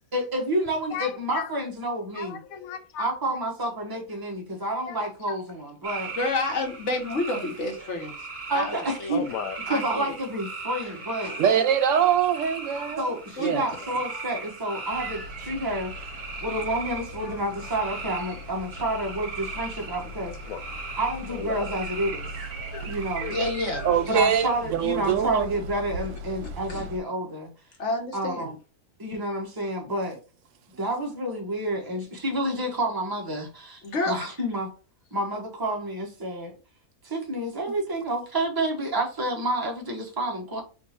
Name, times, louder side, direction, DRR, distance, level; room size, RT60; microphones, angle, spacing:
voice 1, 0.1-2.4 3.0-6.1 8.5-9.2 9.7-11.3 13.0-16.1 16.4-20.3 21.0-22.3 22.8-23.3 24.1-27.5 28.1-28.5 29.0-30.2 30.8-34.7 35.1-36.5 37.0-40.6, right 1 dB, 15° right, 0.9 m, -29 dB
voice 2, 0.9-1.5 2.1-3.4 4.9-5.4 9.1-9.6 11.3-11.4 12.4-12.5 12.8-13.0 13.7-14.3 16.7-17.8 20.2-21.0 21.3-21.7 22.5-23.4 23.8-24.1, left 8 dB, 75° left, 1.0 m, -38 dB
sound 1, 5.8-24.8, right 4 dB, 40° right, 1.6 m, -39 dB
voice 3, 6.2-8.3 8.5-9.2 9.7-10.0 11.2-11.4 13.4-13.6 23.3-24.3 26.7-26.9 27.8-28.5 33.8-34.1, left 2 dB, 55° left, 1.3 m, -30 dB
voice 4, 11.4-13.7 23.8-25.5, right 8 dB, 70° right, 0.8 m, -23 dB
sound 2, 14.9-27.0, right 1 dB, 85° right, 1.2 m, -39 dB
3.6 x 2.8 x 4.2 m
omnidirectional pair, 1.6 m